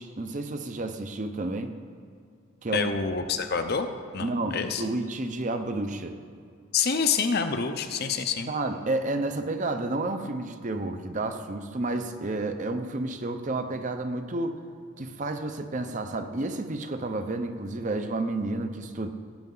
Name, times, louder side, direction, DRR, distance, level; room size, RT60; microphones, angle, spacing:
voice 1, 0.0-1.8 2.6-2.9 4.2-6.2 8.5-14.6 15.0-19.1, right 2 dB, 35° right, 8 dB, 0.6 m, -31 dB
voice 2, 2.7-3.9 4.1-4.8 6.7-8.5, left 5 dB, 45° left, 7 dB, 0.7 m, -27 dB
17.5 x 8.2 x 3.9 m, 2.4 s
head